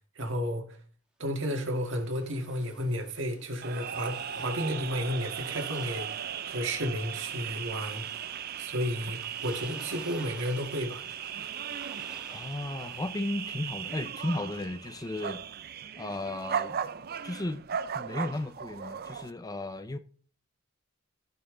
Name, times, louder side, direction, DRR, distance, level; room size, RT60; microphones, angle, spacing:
voice 1, 0.2-0.8 1.2-6.1 6.5-8.1 8.6-11.0, equal, 60° right, 2.0 m, -32 dB
sound 1, 1.3-13.5, right 1 dB, 5° right, 1.5 m, -54 dB
sound 2, 3.6-19.3, right 8 dB, 45° right, 0.5 m, -37 dB
voice 2, 12.3-15.6 16.0-16.9 17.2-17.6 17.9-20.0, left 1 dB, 20° left, 0.5 m, -35 dB
15.5 x 5.6 x 3.8 m
head